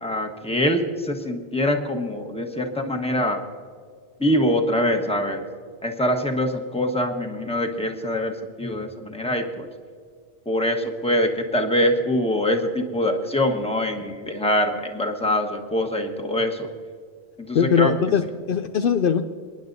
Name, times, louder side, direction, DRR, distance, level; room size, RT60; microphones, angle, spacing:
voice 1, 0.0-3.4 4.2-5.4 5.8-8.3 8.6-9.7 10.5-16.6 17.5-17.9, left 1 dB, 5° left, 4 dB, 1.1 m, -24 dB
voice 2, 17.5-19.2, left 7 dB, 65° left, 8 dB, 0.7 m, -20 dB
29.5 x 10.5 x 2.7 m, 2.1 s
omnidirectional pair, 1.0 m